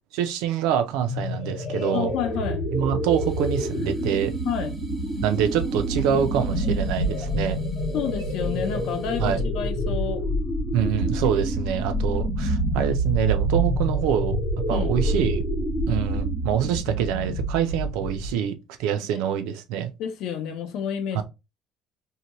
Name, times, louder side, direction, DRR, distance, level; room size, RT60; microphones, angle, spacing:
voice 1, 0.1-2.1 2.7-4.3 5.2-7.6 9.2-9.4 10.7-14.4 14.7-15.4 15.9-19.9 21.1-21.2, right 9 dB, 75° right, 0.5 m, -25 dB
sound 1, 1.0-18.5, right 1 dB, 35° left, 1.0 m, -27 dB
voice 2, 1.9-2.7 4.5-4.7 7.9-10.2 14.7-14.9 19.0-19.2 20.0-21.2, left 8 dB, 50° left, 0.5 m, -30 dB
sound 2, 3.1-9.6, right 2 dB, 5° right, 0.6 m, -48 dB
2.7 x 2.2 x 2.9 m
cardioid pair, 180°, 0 cm